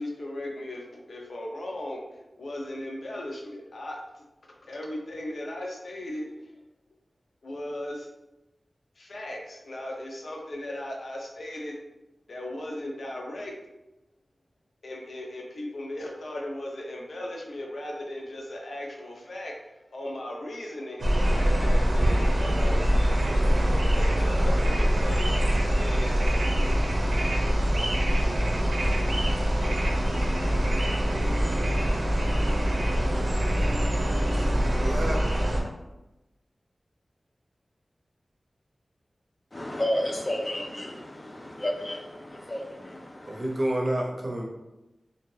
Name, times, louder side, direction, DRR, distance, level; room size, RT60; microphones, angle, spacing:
voice 1, 0.0-2.0 2.4-4.2 4.6-6.3 7.4-8.1 9.0-11.7 12.3-13.5 14.8-19.5 19.9-21.1 21.3-25.4 25.7-26.2, left 1 dB, 80° left, -1 dB, 0.6 m, -37 dB
sound 1, 21.0-35.6, equal, 85° right, 0.6 m, -24 dB
sound 2, 29.9-35.0, right 1 dB, 10° right, 0.7 m, -43 dB
voice 2, 34.8-35.4 43.3-44.5, right 1 dB, 45° right, 0 dB, 0.6 m, -29 dB
voice 3, 39.5-43.6, left 1 dB, 35° left, 0 dB, 0.5 m, -32 dB
2.8 x 2.3 x 3.1 m, 0.98 s
wide cardioid pair, 80°, 0 cm